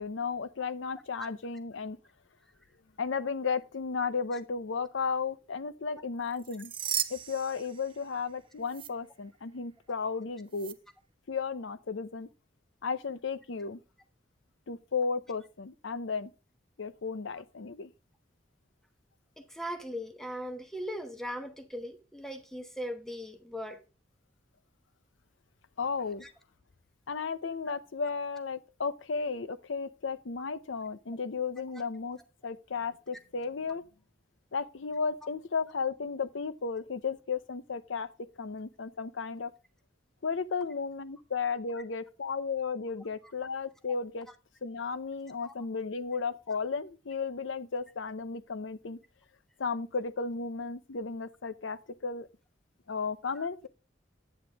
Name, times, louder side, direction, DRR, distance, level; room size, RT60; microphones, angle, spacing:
voice 1, 0.0-2.0 3.0-6.7 7.1-10.7 11.3-12.3 12.8-13.8 14.7-16.3 16.8-17.9 25.8-26.3 27.1-33.8 34.5-38.1 38.4-39.5 40.2-44.3 44.6-49.0 49.6-52.3 52.9-53.7, left 5 dB, 85° left, 0.6 m, -34 dB
sound 1, 6.3-8.3 8.7-8.9 10.5-10.7, right 10 dB, 30° right, 0.5 m, -36 dB
voice 2, 19.4-23.8 26.2-26.3 31.7-31.8 45.4-45.5 53.4-53.5, equal, ahead, 1.0 m, -39 dB
8.8 x 7.9 x 3.5 m
head